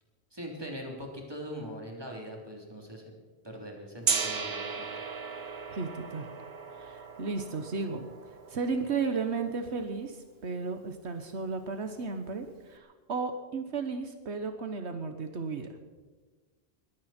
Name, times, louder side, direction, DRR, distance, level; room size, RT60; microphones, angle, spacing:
voice 1, 0.3-3.0 3.4-4.9, equal, 20° right, 0 dB, 3.5 m, -41 dB
Gong, 4.0-10.0, right 5 dB, 65° right, 1.4 m, -36 dB
voice 2, 5.7-6.3 6.7-8.1 8.5-15.7, right 4 dB, 85° right, 7 dB, 1.5 m, -34 dB
20.5 x 15.5 x 4.4 m, 1.3 s
omnidirectional pair, 1.1 m